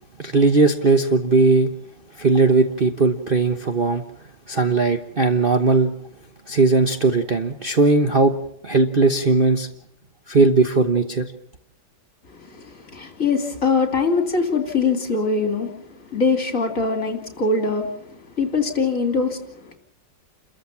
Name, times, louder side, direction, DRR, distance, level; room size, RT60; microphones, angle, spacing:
voice 1, 0.2-1.7 2.2-4.0 4.5-5.9 6.5-8.3 8.6-9.7 10.3-11.3, right 3 dB, 35° right, 4 dB, 1.1 m, -18 dB
voice 2, 12.3-19.8, left 4 dB, 45° left, 5 dB, 3.2 m, -23 dB
29.5 x 14.0 x 7.3 m, 0.71 s
omnidirectional pair, 2.1 m